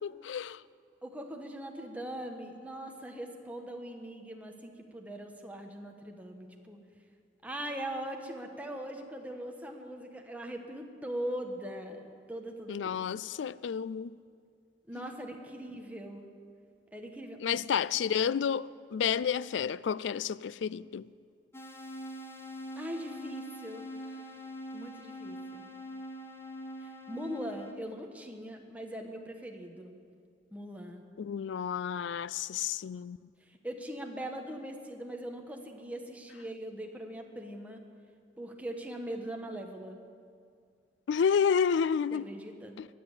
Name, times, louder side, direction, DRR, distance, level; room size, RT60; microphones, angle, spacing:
voice 1, 0.0-0.6 12.7-14.1 15.0-15.1 17.4-21.1 31.2-33.2 41.1-42.2 42.8-42.9, left 7 dB, 80° left, 0.4 m, -30 dB
voice 2, 1.0-6.8 7.4-13.0 14.9-16.3 16.9-17.6 22.7-24.3 24.7-25.7 26.8-29.9 30.5-31.0 33.4-37.8 38.4-40.0 42.1-42.8, right 1 dB, 10° right, 1.3 m, -41 dB
sound 1, 21.5-27.7, equal, 15° left, 1.0 m, -43 dB
22.0 x 7.7 x 8.3 m
head